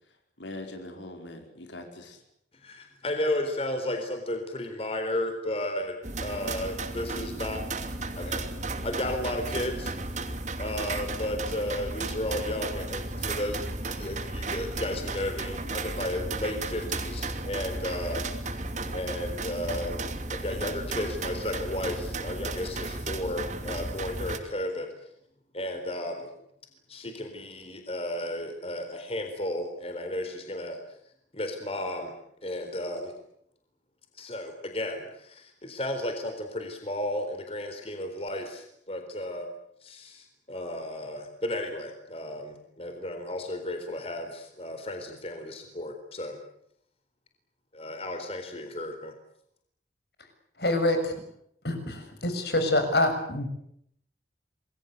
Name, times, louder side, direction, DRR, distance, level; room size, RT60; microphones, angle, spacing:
voice 1, 0.1-2.2, left 2 dB, 85° left, 4 dB, 5.0 m, -42 dB
voice 2, 2.5-5.9 6.2-7.7 8.2-8.4 8.8-10.3 10.6-18.6 18.9-24.9 25.5-26.3 26.9-31.0 31.3-32.1 32.4-33.1 34.1-39.5 39.8-46.4 47.7-49.1, left 1 dB, 35° left, 6 dB, 4.0 m, -34 dB
sound 1, 6.0-24.4, right 2 dB, 40° right, 2.8 m, -34 dB
voice 3, 50.6-51.2 51.6-53.5, left 1 dB, 60° left, 7 dB, 6.8 m, -26 dB
28.0 x 21.5 x 8.3 m, 0.72 s
head